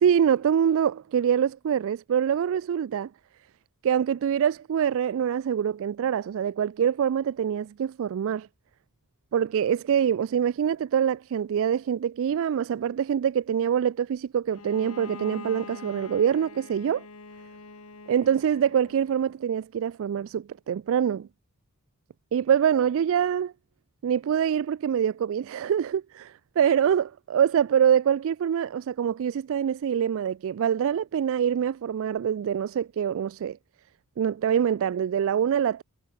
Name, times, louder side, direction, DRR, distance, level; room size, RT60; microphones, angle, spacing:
voice 1, 0.0-3.1 3.8-8.5 9.3-17.0 18.1-21.3 22.3-23.5 24.0-33.6 34.2-35.8, right 8 dB, 60° right, 0.3 m, -25 dB
Bowed string instrument, 14.5-19.2, left 3 dB, 75° left, 2.6 m, -44 dB
head